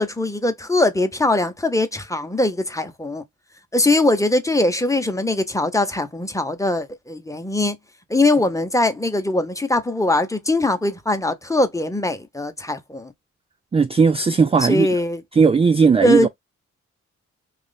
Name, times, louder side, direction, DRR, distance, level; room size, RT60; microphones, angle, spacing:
voice 1, 0.0-3.2 3.7-7.8 8.1-13.1 14.6-15.2 16.0-16.3, left 2 dB, 10° left, 0.9 m, -21 dB
voice 2, 13.7-14.9 15.3-16.3, right 5 dB, 20° right, 0.3 m, -16 dB
2.9 x 2.5 x 4.0 m
cardioid pair, 70°, 30 cm